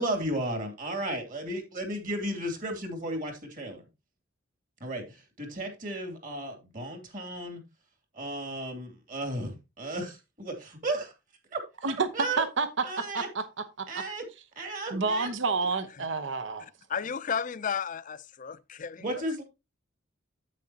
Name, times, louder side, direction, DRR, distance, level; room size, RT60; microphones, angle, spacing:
voice 1, 0.0-3.8 4.8-7.6 8.1-11.1 11.5-11.6 12.1-12.4 12.8-13.3 13.9-14.2 14.6-15.3 19.0-19.4, right 1 dB, 45° right, 2.6 m, -34 dB
voice 2, 12.4-12.8 13.1-13.4 13.8-13.9 14.9-16.7, right 4 dB, 65° right, 0.9 m, -29 dB
voice 3, 16.9-19.4, left 7 dB, 40° left, 0.5 m, -34 dB
9.1 x 8.4 x 2.8 m
head